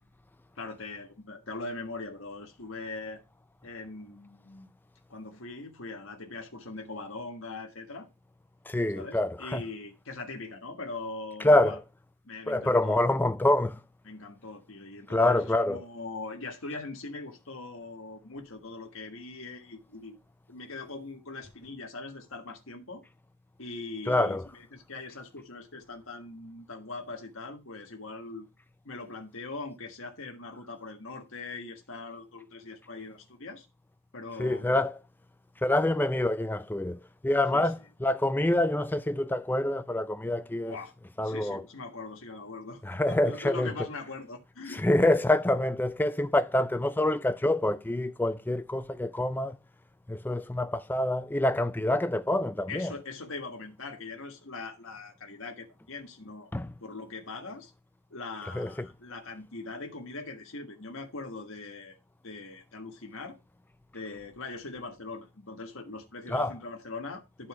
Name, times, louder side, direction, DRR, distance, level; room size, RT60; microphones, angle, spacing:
voice 1, 0.6-3.2 3.6-4.7 5.1-8.1 8.9-11.8 12.2-13.0 14.0-20.2 20.5-23.0 23.6-28.5 28.8-33.7 34.1-34.8 37.5-37.7 40.7-40.9 41.2-45.1 52.7-56.5 56.8-57.7 58.1-62.0 62.2-63.4 63.9-67.5, left 3 dB, 60° left, 1.5 m, -41 dB
voice 2, 8.7-9.6 11.4-11.8 12.5-13.8 15.1-15.8 24.1-24.4 34.4-34.9 35.6-40.8 41.2-41.6 42.8-43.7 44.8-49.6 50.1-52.9 56.5-56.7 58.5-58.9 66.3-66.5, left 1 dB, 10° left, 0.4 m, -26 dB
11.5 x 4.3 x 4.8 m
head